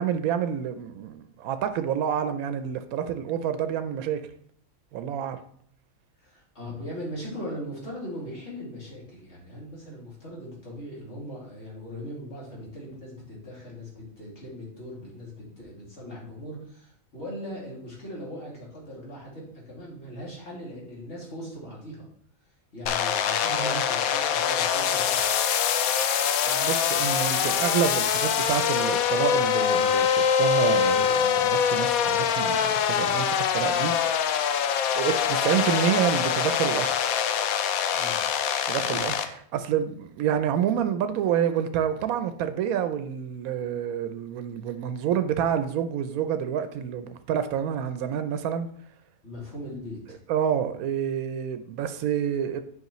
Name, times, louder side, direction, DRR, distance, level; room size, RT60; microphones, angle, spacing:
voice 1, 0.0-4.2 4.9-5.4 23.5-23.8 25.8-26.0 26.5-34.3 34.9-36.9 38.7-48.7 50.3-52.6, right 9 dB, 85° right, 1.0 m, -28 dB
voice 2, 6.2-22.1 22.7-25.4 33.8-34.0 37.9-38.2 38.8-39.1 49.2-50.2, equal, 50° left, 2.7 m, -39 dB
sound 1, 22.9-39.3, left 8 dB, 85° left, 1.1 m, -24 dB
8.0 x 5.5 x 3.0 m
omnidirectional pair, 1.5 m